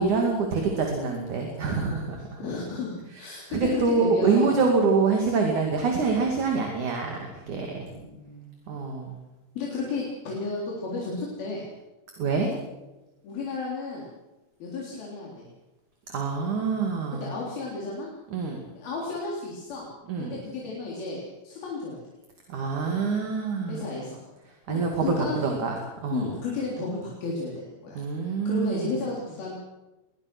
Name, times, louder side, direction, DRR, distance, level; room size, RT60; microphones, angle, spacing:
voice 1, 0.0-2.4 3.5-7.9 8.7-9.2 12.2-12.5 16.1-17.3 18.3-18.6 20.1-20.4 22.5-23.9 24.7-26.3 28.0-29.0, right 4 dB, 60° right, 2 dB, 3.8 m, -26 dB
voice 2, 2.4-4.6 7.7-8.5 9.6-11.7 13.2-14.1 14.6-15.5 17.1-18.1 18.7-19.9 20.2-22.0 23.7-24.2 24.7-25.4 26.1-29.5, left 3 dB, 85° left, -4 dB, 5.6 m, -33 dB
22.0 x 21.0 x 6.2 m, 1.0 s
omnidirectional pair, 4.1 m